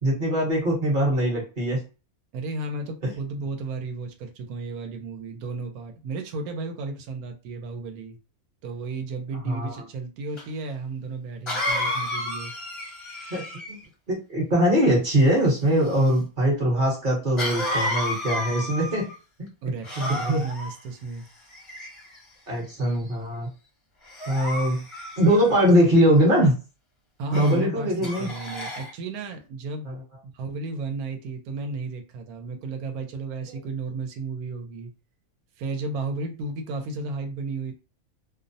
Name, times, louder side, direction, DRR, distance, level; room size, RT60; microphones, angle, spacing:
voice 1, 0.0-1.8 9.4-9.8 13.3-13.8 14.1-19.1 19.4-19.5 20.0-20.4 22.5-23.5 24.3-24.8 25.2-26.5 27.3-28.3 29.9-30.0, equal, 40° right, 0.9 m, -22 dB
voice 2, 2.3-8.2 8.6-12.5 19.6-21.3 27.2-29.9 30.2-34.9 35.6-37.7, right 3 dB, 85° right, 1.1 m, -33 dB
Cough, 10.4-10.5 11.5-13.8 17.4-19.1 19.8-20.7 21.5-22.2 22.8-23.1 24.1-25.7 27.3-27.6 28.0-28.9, left 1 dB, 30° left, 0.5 m, -31 dB
2.6 x 2.0 x 2.6 m
omnidirectional pair, 1.5 m